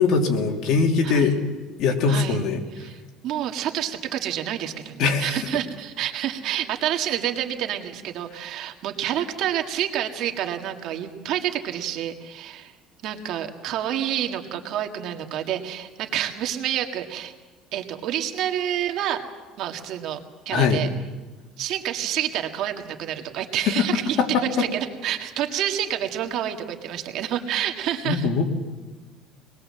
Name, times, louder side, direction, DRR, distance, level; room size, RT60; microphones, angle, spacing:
voice 1, 0.0-1.3 1.8-2.6 5.0-5.4 20.5-20.8 23.6-23.7 24.2-24.4 28.0-28.5, left 5 dB, 55° left, 3 dB, 3.0 m, -21 dB
voice 2, 2.1-2.4 2.7-3.0 3.2-12.7 13.0-17.3 17.7-19.2 19.6-20.2 20.5-20.9 21.6-24.2 24.6-28.3, right 11 dB, 55° right, 5 dB, 2.0 m, -28 dB
24.5 x 20.0 x 7.7 m, 1.3 s
cardioid pair, 150°, 0 cm